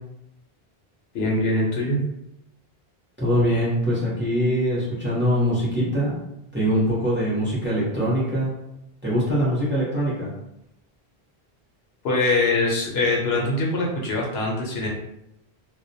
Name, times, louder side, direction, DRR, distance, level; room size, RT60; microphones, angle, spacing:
voice 1, 1.1-2.0 12.0-14.9, left 2 dB, 80° left, -2 dB, 0.9 m, -23 dB
voice 2, 3.2-6.1 6.5-8.5 9.0-10.3, equal, 15° right, -7 dB, 0.7 m, -23 dB
2.1 x 2.1 x 2.6 m, 0.85 s
omnidirectional pair, 1.1 m